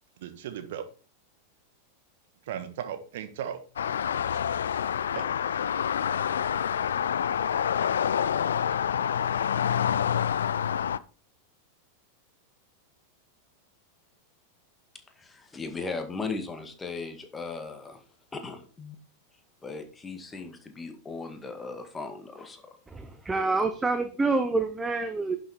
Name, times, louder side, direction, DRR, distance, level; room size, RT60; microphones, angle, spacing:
voice 1, 0.2-0.8 2.5-3.6 4.7-4.8 5.1-5.7, right 9 dB, 55° right, 9 dB, 1.5 m, -37 dB
sound 1, 3.8-11.0, left 8 dB, 65° left, 0.4 m, -27 dB
voice 2, 15.2-18.0 18.3-19.0 19.6-22.7, left 4 dB, 15° left, 6 dB, 2.0 m, -37 dB
voice 3, 22.9-25.4, right 3 dB, 10° right, 8 dB, 1.0 m, -27 dB
11.0 x 7.1 x 4.4 m, 0.37 s
figure-of-eight pair, 90°, 0 cm